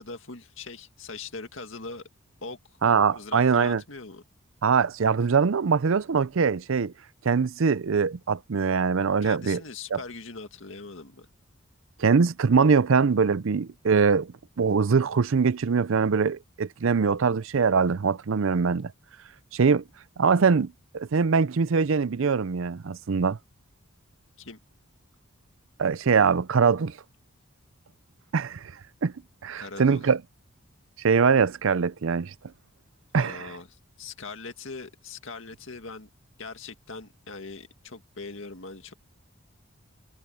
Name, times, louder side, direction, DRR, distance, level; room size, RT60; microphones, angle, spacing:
voice 1, 0.0-2.0 2.4-2.6 3.1-4.2 9.2-11.3 24.4-24.6 29.6-30.1 33.1-36.1 36.4-38.9, left 4 dB, 65° left, 2.1 m, -41 dB
voice 2, 2.8-3.8 4.6-6.9 7.2-9.6 9.9-10.0 12.0-18.9 19.5-19.8 20.2-23.4 25.8-26.9 28.3-28.6 29.0-29.1 29.4-30.2 31.0-32.3 33.1-33.5, right 5 dB, 65° right, 0.5 m, -23 dB
head